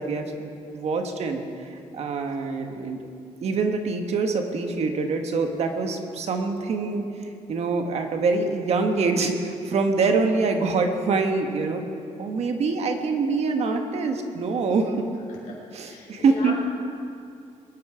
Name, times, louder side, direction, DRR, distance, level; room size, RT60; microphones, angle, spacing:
voice 1, 0.0-3.0 3.4-11.8 12.2-15.0 15.7-16.5, right 4 dB, 60° right, 5 dB, 1.4 m, -25 dB
voice 2, 15.8-16.5, left 4 dB, 85° left, -2 dB, 3.8 m, -37 dB
22.0 x 10.0 x 5.0 m, 2.4 s
wide cardioid pair, 175°, 12 cm